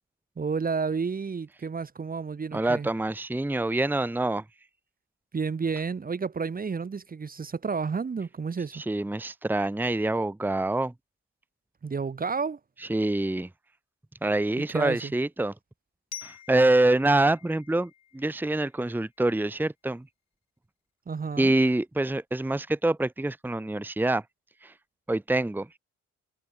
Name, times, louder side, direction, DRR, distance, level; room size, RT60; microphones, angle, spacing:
voice 1, 0.4-2.9 5.3-8.8 11.8-12.6 14.7-15.1 21.1-21.5, right 5 dB, 30° right, 1.3 m, -31 dB
voice 2, 2.5-4.5 8.7-10.9 12.8-13.5 14.2-15.5 16.2-20.1 21.4-24.3 24.6-24.8 25.1-25.7, right 2 dB, 5° right, 1.1 m, -26 dB
Glockenspiel, 16.1-19.0, left 10 dB, 65° left, 2.8 m, -47 dB
cardioid pair, 90°, 30 cm